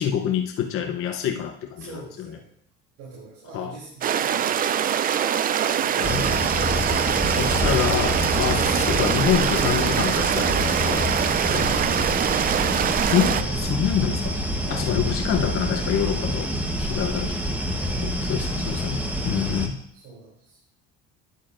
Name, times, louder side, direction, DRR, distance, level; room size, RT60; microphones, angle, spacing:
voice 1, 0.0-1.9 3.5-3.7 6.0-6.4 7.3-11.0 11.5-11.7 13.1-14.4 14.7-16.5 16.8-17.3 18.0-19.8, left 9 dB, 50° left, 3 dB, 0.8 m, -26 dB
voice 2, 1.8-2.5 3.0-5.1 5.5-6.0 13.4-13.9 14.5-14.9 17.8-18.2 19.2-19.5 19.9-20.6, right 4 dB, 75° right, -6 dB, 3.1 m, -43 dB
sound 1, 4.0-13.4, right 9 dB, 30° right, 0.4 m, -23 dB
sound 2, 6.0-19.7, equal, 5° right, 1.0 m, -27 dB
9.3 x 8.2 x 2.5 m, 0.70 s
supercardioid pair, 100°, 29 cm